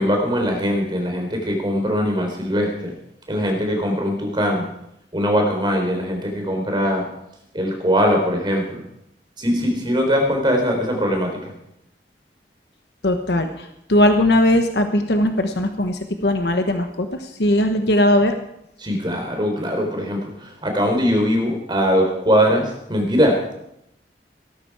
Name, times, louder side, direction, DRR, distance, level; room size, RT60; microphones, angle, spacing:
voice 1, 0.0-2.9 3.3-4.7 5.1-7.0 7.5-8.8 9.4-11.5 18.8-23.5, equal, 25° right, 3 dB, 3.7 m, -21 dB
voice 2, 13.0-13.5 13.9-17.1 17.4-18.3, left 1 dB, 70° left, 6 dB, 1.2 m, -18 dB
18.0 x 13.5 x 4.8 m, 0.79 s
head